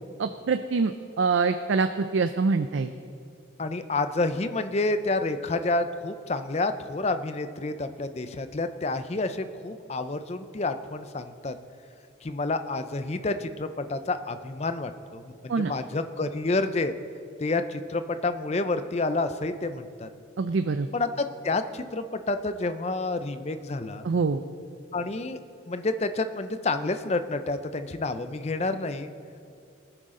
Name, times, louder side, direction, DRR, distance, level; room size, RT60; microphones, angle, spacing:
voice 1, 0.2-2.9 15.5-15.7 20.4-20.9 24.0-24.4, right 4 dB, 75° right, 9 dB, 0.4 m, -25 dB
voice 2, 3.6-11.6 12.2-16.9 17.4-20.1 20.9-24.1 24.9-25.4 25.7-29.1, left 2 dB, 35° left, 10 dB, 0.5 m, -29 dB
20.0 x 9.0 x 3.8 m, 2.4 s
head